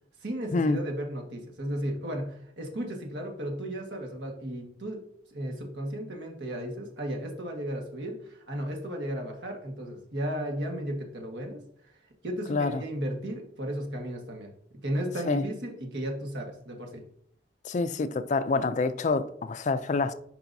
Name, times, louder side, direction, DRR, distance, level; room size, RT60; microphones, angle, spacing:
voice 1, 0.2-5.0 5.3-11.6 12.2-14.5 14.8-17.0, equal, 75° right, 1.5 m, -34 dB
voice 2, 12.5-12.8 15.3-15.4 17.6-20.1, left 3 dB, 40° left, 0.4 m, -27 dB
10.5 x 4.9 x 2.7 m
head